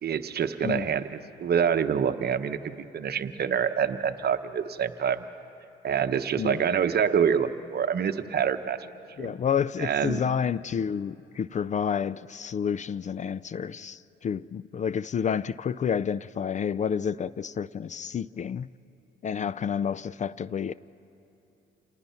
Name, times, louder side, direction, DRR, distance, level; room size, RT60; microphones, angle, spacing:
voice 1, 0.0-1.0 1.4-2.6 2.9-5.2 5.8-8.8 9.2-9.3 9.8-10.2, right 7 dB, 55° right, 1.0 m, -26 dB
voice 2, 9.2-18.7 19.2-20.7, left 7 dB, 40° left, 0.4 m, -29 dB
28.0 x 18.5 x 5.7 m
cardioid pair, 90°, 20 cm